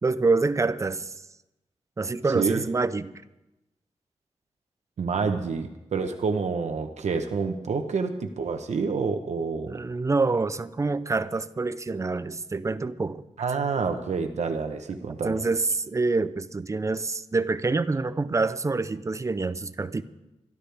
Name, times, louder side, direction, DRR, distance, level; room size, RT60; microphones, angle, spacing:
voice 1, 0.0-1.2 2.0-3.1 9.7-13.2 15.2-20.0, right 3 dB, 25° right, 13 dB, 0.5 m, -26 dB
voice 2, 5.0-9.8 13.4-15.4, right 5 dB, 75° right, 6 dB, 1.0 m, -28 dB
24.5 x 12.0 x 3.5 m, 0.97 s
wide cardioid pair, 165°, 12 cm